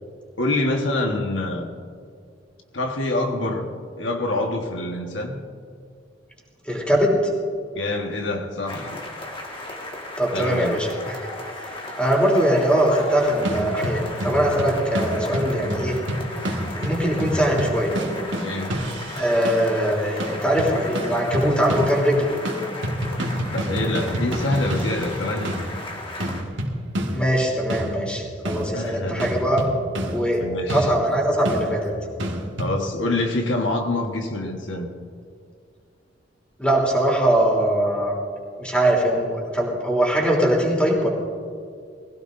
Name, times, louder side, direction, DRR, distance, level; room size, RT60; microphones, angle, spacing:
voice 1, 0.4-1.7 2.7-3.7 4.0-5.4 7.7-9.0 10.3-10.7 18.4-18.8 23.5-25.5 28.7-29.3 30.4-30.9 32.6-34.9, left 2 dB, 85° left, 2 dB, 1.5 m, -26 dB
voice 2, 6.7-7.2 10.2-11.2 11.6-11.7 12.0-15.9 16.7-18.0 19.2-22.3 27.1-29.7 30.1-30.4 30.7-31.8 36.6-38.1 38.6-41.1, right 1 dB, 5° left, -3 dB, 3.3 m, -21 dB
sound 1, 8.7-26.4, left 1 dB, 30° left, 1.8 m, -36 dB
sound 2, 13.4-19.8 20.2-22.2 22.4-32.7, equal, 85° right, 1.8 m, -29 dB
22.5 x 16.0 x 2.7 m, 2.2 s
head